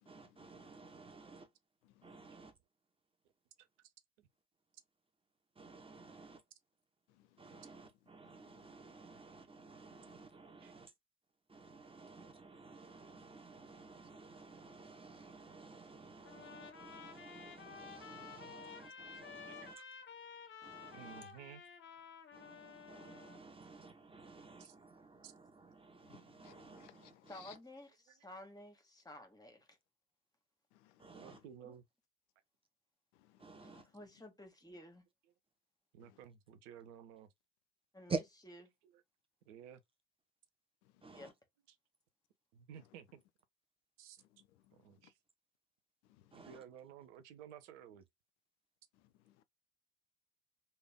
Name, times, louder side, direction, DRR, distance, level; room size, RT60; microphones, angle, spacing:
voice 1, 0.0-1.5 2.0-2.5 5.5-6.4 7.4-10.9 11.5-19.8 20.6-21.3 22.3-27.6 31.0-31.4 33.4-33.9 38.1-38.2 41.0-41.3 46.3-46.6, right 4 dB, 15° right, 1.0 m, -51 dB
voice 2, 1.8-2.2 7.1-7.6 8.3-8.5 9.9-10.1 20.8-21.0 26.0-27.6 30.7-31.4 33.1-33.8 34.2-34.3 36.0-36.2 40.8-41.2 42.8-42.9 44.2-45.1 46.0-46.5 48.9-49.4, left 13 dB, 60° left, 0.5 m, -65 dB
Trumpet, 16.2-23.4, left 6 dB, 30° left, 1.0 m, -52 dB
voice 3, 20.9-21.6 24.6-24.7 25.2-25.3 28.1-28.2 31.1-31.8 35.9-37.3 38.8-39.0 39.5-39.8 42.5-43.2 44.0-44.2 44.7-45.1 46.3-48.0, right 9 dB, 60° right, 0.8 m, -54 dB
voice 4, 27.3-29.8 31.6-31.7 33.9-35.0 37.9-38.1 41.1-41.3, left 1 dB, 10° left, 1.4 m, -53 dB
3.4 x 2.6 x 3.6 m
figure-of-eight pair, 65°, 41 cm